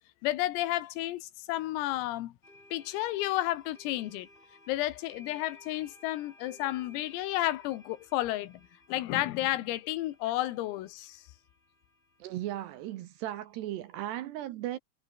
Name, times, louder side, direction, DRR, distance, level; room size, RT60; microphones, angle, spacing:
voice 1, 0.2-2.3 2.7-4.3 4.7-8.6 8.9-11.2, left 16 dB, 85° left, 4.2 m, -32 dB
sound 1, 2.4-14.0, left 1 dB, 10° left, 4.4 m, -59 dB
voice 2, 12.2-14.8, right 13 dB, 75° right, 2.7 m, -36 dB
omnidirectional pair, 5.9 m